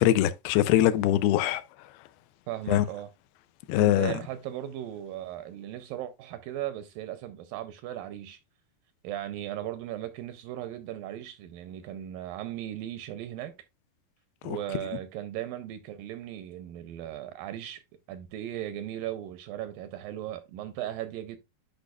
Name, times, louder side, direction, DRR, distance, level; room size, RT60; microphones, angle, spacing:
voice 1, 0.0-1.6 2.7-2.9 3.7-4.1 14.5-14.6, left 13 dB, 85° left, 2.5 m, -22 dB
voice 2, 2.5-3.1 3.8-8.4 9.0-13.5 14.4-17.8 18.1-21.4, right 12 dB, 80° right, 2.1 m, -37 dB
10.5 x 5.0 x 2.3 m
omnidirectional pair, 4.4 m